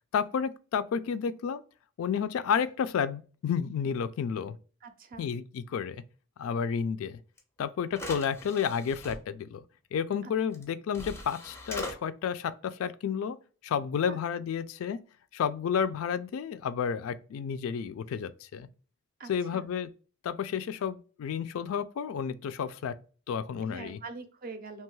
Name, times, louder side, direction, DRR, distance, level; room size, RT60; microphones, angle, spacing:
voice 1, 0.1-1.6 2.0-4.6 5.2-6.0 6.4-7.2 7.6-9.6 9.9-13.4 13.6-15.0 15.3-18.7 19.3-19.9 20.2-23.0 23.3-24.0, left 7 dB, 80° left, 0.3 m, -31 dB
voice 2, 4.8-5.3 10.2-10.3 14.0-14.2 19.2-19.7 23.7-24.8, right 4 dB, 40° right, 0.5 m, -44 dB
sound 1, 7.4-7.5 7.9-9.2 10.5-10.6 10.9-12.0, left 1 dB, 10° left, 0.4 m, -40 dB
2.9 x 2.2 x 3.0 m
head